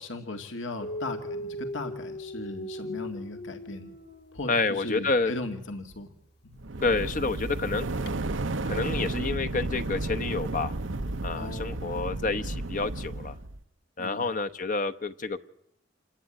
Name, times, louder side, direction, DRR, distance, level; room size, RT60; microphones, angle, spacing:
voice 1, 0.0-3.9 4.3-6.1 6.4-6.6 11.3-11.9 14.0-14.4, left 2 dB, 80° left, 6 dB, 2.0 m, -37 dB
Dog, 0.8-4.8 5.8-6.0 8.0-8.2, left 1 dB, 60° left, 2.1 m, -38 dB
voice 2, 4.5-5.3 6.8-7.9 8.7-10.7 11.2-13.3 14.0-15.4, left 3 dB, 45° left, 9 dB, 0.9 m, -29 dB
sound 1, 6.6-13.6, right 2 dB, 85° right, 1.0 m, -32 dB
27.5 x 20.0 x 8.9 m, 0.79 s
head